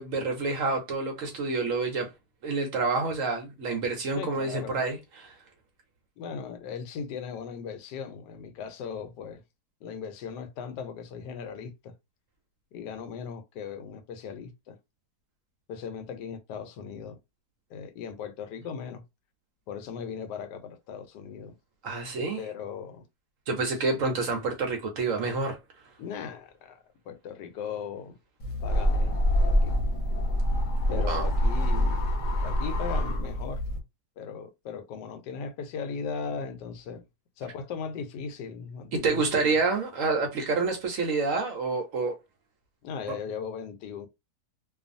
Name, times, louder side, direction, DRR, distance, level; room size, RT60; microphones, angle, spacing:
voice 1, 0.0-2.1 2.4-5.4 21.8-22.4 23.5-25.6 30.9-31.3 38.9-42.2, right 3 dB, 65° right, 0.9 m, -28 dB
voice 2, 4.1-4.8 6.2-9.4 9.8-11.9 12.7-14.8 15.7-17.2 17.7-19.0 19.7-21.6 22.3-23.0 23.9-24.0 26.0-28.2 28.6-29.2 29.5-29.7 30.9-32.0 32.4-33.6 34.2-37.0 37.4-39.5 42.8-44.1, left 6 dB, 85° left, 1.2 m, -38 dB
sound 1, 28.4-33.8, equal, 60° left, 1.0 m, -26 dB
2.5 x 2.4 x 2.5 m
omnidirectional pair, 1.8 m